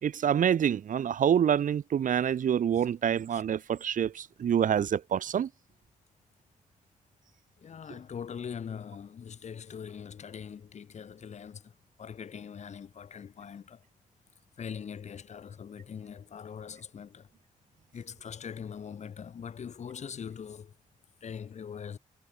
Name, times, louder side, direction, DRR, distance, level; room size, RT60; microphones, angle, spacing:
voice 1, 0.0-5.5, right 9 dB, 80° right, 3.7 m, -26 dB
voice 2, 7.6-11.7 12.0-13.8 14.6-17.3 17.9-20.7 21.2-22.0, left 7 dB, 60° left, 6.5 m, -42 dB
wide cardioid pair, 155°, 13 cm